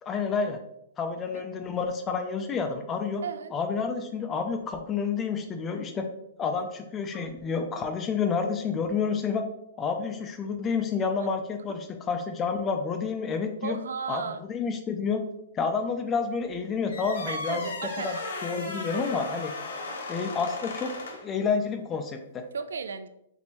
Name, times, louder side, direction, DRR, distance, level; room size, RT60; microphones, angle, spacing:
voice 1, 0.0-0.6 1.0-3.2 3.5-6.1 6.4-9.5 9.8-13.8 14.1-15.2 15.5-17.7 18.0-19.5 20.1-22.4, left 5 dB, 20° left, 6 dB, 0.4 m, -29 dB
voice 2, 3.2-3.6 6.6-6.7 11.2-11.3 13.6-14.4 17.3-18.2 19.9-20.0 22.5-23.1, right 6 dB, 85° right, 11 dB, 0.3 m, -35 dB
sound 1, 16.9-21.3, left 3 dB, 80° left, 0.9 m, -36 dB
4.3 x 3.2 x 2.9 m, 0.80 s
hypercardioid pair, 145°, 0 cm